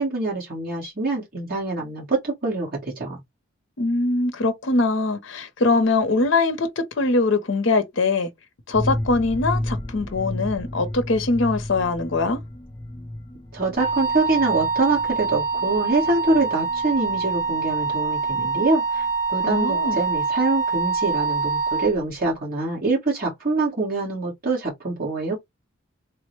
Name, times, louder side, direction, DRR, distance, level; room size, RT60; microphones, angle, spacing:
voice 1, 0.0-3.2 13.5-25.4, right 3 dB, 45° right, 1.3 m, -25 dB
voice 2, 3.8-8.3 8.7-12.4 19.4-20.0, left 3 dB, 60° left, 0.6 m, -22 dB
sound 1, 8.7-18.3 18.6-18.7 19.0-19.1, left 1 dB, 15° left, 0.3 m, -33 dB
Wind instrument woodwind instrument, 13.8-22.0, right 5 dB, 30° right, 1.5 m, -25 dB
3.5 x 2.1 x 3.0 m
head